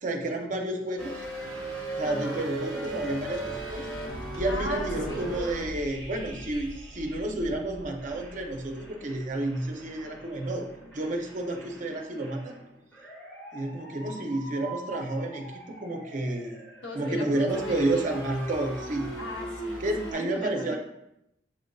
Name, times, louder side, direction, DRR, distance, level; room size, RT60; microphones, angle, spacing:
voice 1, 0.0-1.2 2.0-3.9 4.3-10.7 10.9-12.6 13.5-16.6 16.9-19.1 19.8-20.8, right 2 dB, 40° right, 3 dB, 0.5 m, -30 dB
sound 1, 1.0-7.5 8.0-20.1, right 2 dB, 5° left, 1.2 m, -40 dB
voice 2, 2.0-2.5 4.0-5.3 16.8-18.0 19.2-20.8, left 2 dB, 70° left, 2 dB, 0.7 m, -39 dB
sound 2, 2.8-10.8, equal, 25° left, 0.4 m, -42 dB
6.9 x 2.5 x 2.2 m, 0.81 s
head